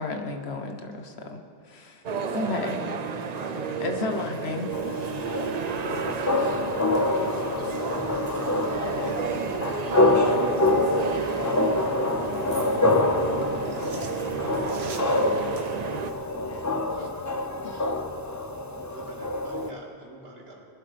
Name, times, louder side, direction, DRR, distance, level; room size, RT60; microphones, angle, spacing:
voice 1, 0.0-1.4 1.6-2.0 2.3-2.9 3.8-5.1, left 2 dB, 85° left, 5 dB, 1.4 m, -32 dB
sound 1, 2.0-16.1, right 5 dB, 50° right, 0.6 m, -32 dB
voice 2, 2.9-3.8 5.6-8.6 8.9-10.2 13.3-14.7 16.1-17.1 17.6-18.0, left 3 dB, 50° left, 6 dB, 1.0 m, -47 dB
sound 2, 4.7-19.7, left 2 dB, 25° left, 0.5 m, -26 dB
sound 3, 7.2-9.4 11.6-12.6 13.4-16.8 17.2-17.3, right 3 dB, 90° right, 1.4 m, -48 dB
voice 3, 17.0-17.3 18.9-20.6, right 1 dB, 70° right, -2 dB, 2.4 m, -47 dB
20.5 x 11.5 x 3.4 m, 2.7 s
omnidirectional pair, 1.0 m